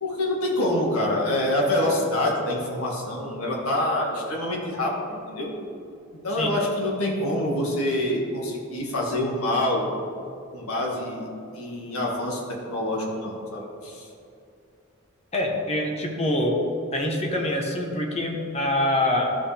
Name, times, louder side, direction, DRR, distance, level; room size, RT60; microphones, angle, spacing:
voice 1, 0.0-5.5 6.2-9.9 10.5-11.3 11.5-14.1, left 1 dB, 90° left, -2 dB, 1.8 m, -26 dB
voice 2, 15.3-16.6 16.9-19.3, left 1 dB, 30° left, 1 dB, 1.0 m, -25 dB
13.5 x 5.4 x 3.4 m, 2.5 s
head